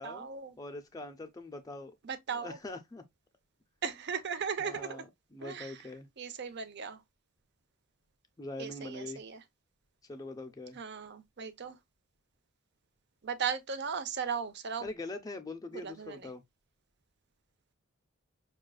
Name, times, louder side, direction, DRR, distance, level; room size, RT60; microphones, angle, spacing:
voice 1, 0.0-0.5 2.0-2.6 3.8-5.0 5.4-5.8 6.2-7.0 8.6-9.4 10.7-11.8 13.2-14.9 15.7-16.3, right 6 dB, 55° right, 0.7 m, -37 dB
voice 2, 0.6-2.0 2.3-3.0 4.6-6.1 8.4-9.2 10.0-10.8 14.8-16.4, left 2 dB, 20° left, 0.4 m, -43 dB
6.1 x 2.3 x 2.3 m
head